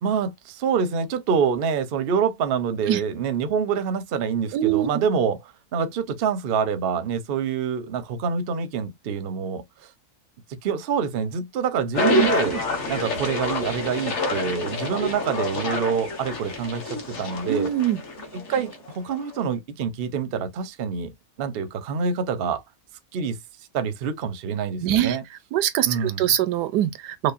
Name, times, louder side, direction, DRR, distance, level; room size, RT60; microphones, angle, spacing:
voice 1, 0.0-5.4 5.7-9.6 10.6-12.6 12.9-17.7 18.3-21.1 21.4-22.6 23.1-23.4 23.7-25.2 25.9-26.3, right 6 dB, 55° right, 0.6 m, -26 dB
voice 2, 4.5-4.9 12.5-12.6 17.5-18.0 24.8-25.2 25.5-27.3, right 12 dB, 90° right, 1.2 m, -23 dB
sound 1, 11.9-19.2, left 2 dB, 45° left, 1.5 m, -27 dB
5.2 x 2.2 x 2.4 m
omnidirectional pair, 1.7 m